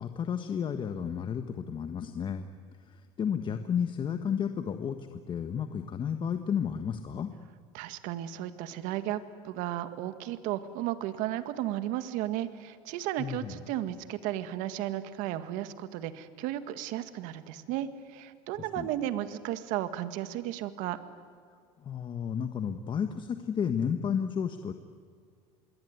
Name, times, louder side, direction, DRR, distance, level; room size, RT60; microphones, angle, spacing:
voice 1, 0.0-2.5 2.9-7.3 13.2-13.5 18.8-18.9 21.8-24.7, left 7 dB, 35° left, 8 dB, 1.5 m, -32 dB
voice 2, 7.7-21.0, right 13 dB, 70° right, 11 dB, 1.9 m, -34 dB
26.0 x 23.0 x 9.6 m, 2.1 s
supercardioid pair, 115°, 14 cm